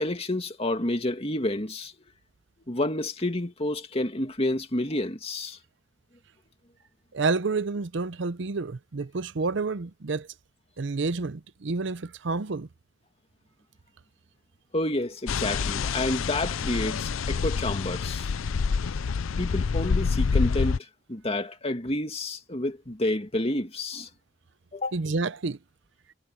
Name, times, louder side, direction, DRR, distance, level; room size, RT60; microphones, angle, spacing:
voice 1, 0.0-1.9 2.7-5.6 14.7-18.3 19.4-20.8 21.1-24.1 24.7-25.0, left 1 dB, 30° left, 2.3 m, -29 dB
voice 2, 7.1-10.3 10.8-12.7 24.9-25.6, right 3 dB, 65° right, 0.6 m, -29 dB
sound 1, 15.3-20.8, left 5 dB, 85° left, 0.5 m, -27 dB
head